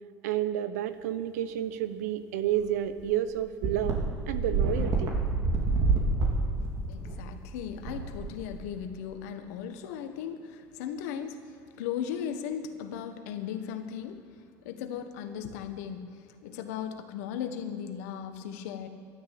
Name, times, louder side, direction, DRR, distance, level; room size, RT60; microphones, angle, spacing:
voice 1, 0.2-4.0 4.3-5.1, right 11 dB, 90° right, 12 dB, 0.9 m, -30 dB
sound 1, 2.6-2.7 3.0-3.1 3.6-8.8, right 3 dB, 50° right, 4.0 m, -28 dB
voice 2, 6.9-11.4 11.8-14.2 14.6-16.1 16.4-18.9, left 8 dB, 80° left, 7 dB, 1.5 m, -37 dB
12.5 x 12.5 x 8.5 m, 2.5 s
supercardioid pair, 95°, 8 cm